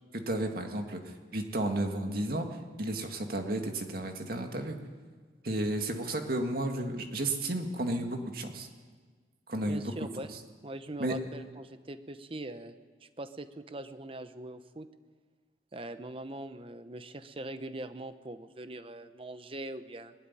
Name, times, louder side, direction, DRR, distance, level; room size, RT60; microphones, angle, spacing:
voice 1, 0.1-2.5 2.8-4.8 5.4-8.7 9.5-9.9 11.0-11.1, right 1 dB, 55° right, 4 dB, 2.1 m, -32 dB
voice 2, 9.7-10.3 10.6-12.7 13.0-14.9 15.7-20.1, right 2 dB, 30° right, 10 dB, 0.9 m, -42 dB
21.0 x 12.5 x 9.9 m, 1.5 s
head